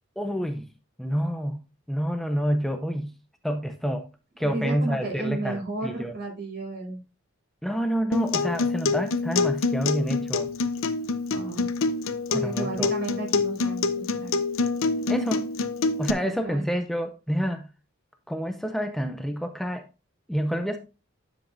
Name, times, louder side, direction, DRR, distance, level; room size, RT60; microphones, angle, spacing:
voice 1, 0.2-0.7 1.0-1.6 1.9-3.1 3.4-4.1 4.4-6.2 7.6-10.5 12.4-12.9 15.1-15.4 16.0-17.7 18.3-19.9 20.3-20.8, equal, ahead, 0.5 m, -28 dB
voice 2, 4.4-7.0 11.3-11.7 12.3-14.4 16.2-16.6, right 3 dB, 50° right, 4.8 m, -33 dB
Acoustic guitar, 8.1-16.1, left 4 dB, 75° left, 0.7 m, -26 dB
10.5 x 7.2 x 2.6 m
head